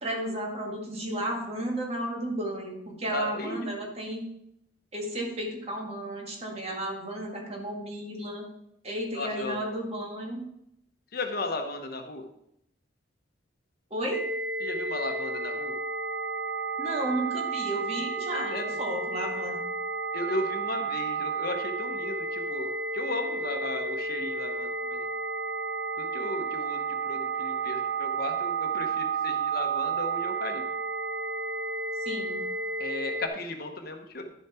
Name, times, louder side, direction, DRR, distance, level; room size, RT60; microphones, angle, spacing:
voice 1, 0.0-4.2 4.9-8.5 8.8-10.4 13.9-14.3 16.8-19.6 32.1-32.4, right 1 dB, 30° right, 0 dB, 2.0 m, -33 dB
voice 2, 3.1-3.9 9.1-9.7 11.1-12.2 14.6-15.8 18.4-18.8 20.1-25.0 26.0-30.6 32.8-34.2, left 2 dB, 50° left, 4 dB, 1.1 m, -35 dB
sound 1, 14.1-33.3, right 4 dB, 85° right, 1.1 m, -32 dB
11.0 x 7.3 x 4.4 m, 0.78 s
head